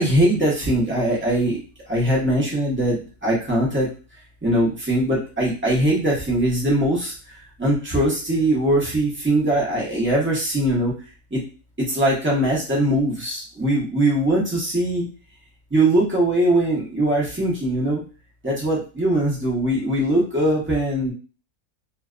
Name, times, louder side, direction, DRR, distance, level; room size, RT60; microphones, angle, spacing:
voice 1, 0.0-1.6 1.9-3.9 4.4-7.1 7.6-10.9 11.3-11.4 11.8-15.1 15.7-18.0 18.4-21.1, right 1 dB, 20° right, -5 dB, 0.3 m, -21 dB
2.6 x 2.2 x 2.4 m, 0.36 s
omnidirectional pair, 1.7 m